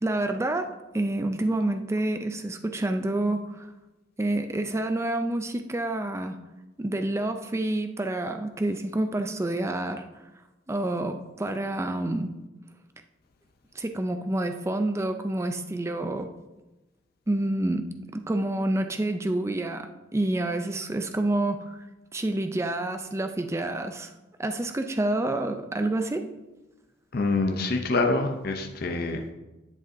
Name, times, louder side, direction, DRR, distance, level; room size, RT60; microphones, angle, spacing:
voice 1, 0.0-3.7 4.2-6.4 6.8-10.1 10.7-12.3 13.7-16.3 17.3-17.9 18.1-21.8 22.1-24.1 24.4-26.3, right 1 dB, 15° right, 7 dB, 0.4 m, -28 dB
voice 2, 27.1-29.3, left 3 dB, 50° left, 3 dB, 0.6 m, -26 dB
10.5 x 6.6 x 2.7 m, 1.1 s
head